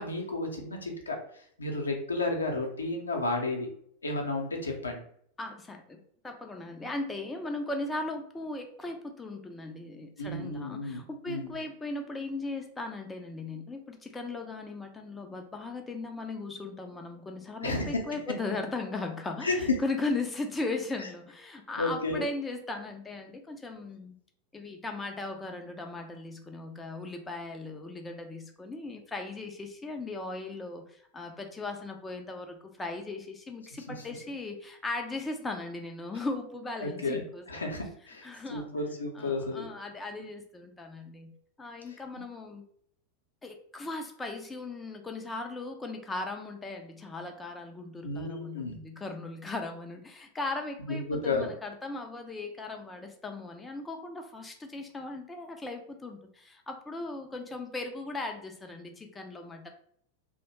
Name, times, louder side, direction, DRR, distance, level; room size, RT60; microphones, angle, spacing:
voice 1, 0.0-3.7 4.0-5.0 10.2-11.0 11.3-11.6 17.6-18.0 19.4-19.7 21.8-22.2 36.8-37.2 37.5-39.6 41.9-42.0 48.0-48.8 50.9-51.5, left 2 dB, 75° left, 1 dB, 0.5 m, -32 dB
voice 2, 5.4-24.2 24.5-37.6 38.2-38.7 39.1-41.3 41.6-42.6 43.4-59.7, left 2 dB, 10° left, 4 dB, 0.3 m, -38 dB
2.7 x 2.1 x 3.0 m, 0.64 s
figure-of-eight pair, 90°, 0 cm